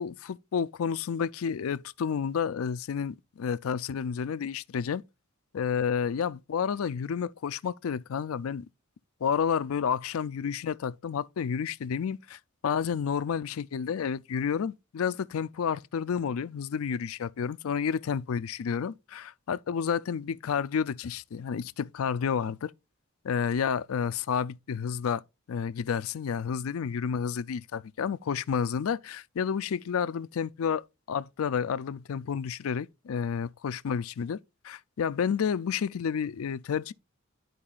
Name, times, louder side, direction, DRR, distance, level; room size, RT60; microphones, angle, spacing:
voice 1, 0.0-5.0 5.5-8.6 9.2-22.7 23.2-25.2 25.5-30.8 31.1-34.4 34.6-36.9, left 7 dB, 80° left, 0.4 m, -30 dB
11.5 x 4.7 x 2.4 m
head